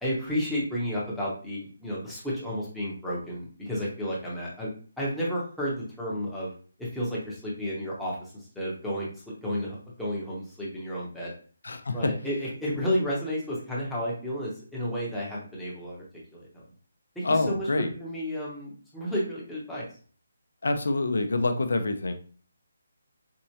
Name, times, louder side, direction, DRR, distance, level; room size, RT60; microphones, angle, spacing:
voice 1, 0.0-6.5 6.8-11.3 11.9-16.0 16.3-16.6 17.1-19.9, equal, ahead, -8 dB, 0.8 m, -32 dB
voice 2, 11.6-12.0 17.2-17.9 20.6-22.1, left 2 dB, 75° left, 8 dB, 0.5 m, -26 dB
4.4 x 2.0 x 2.8 m, 0.42 s
hypercardioid pair, 170°, 0 cm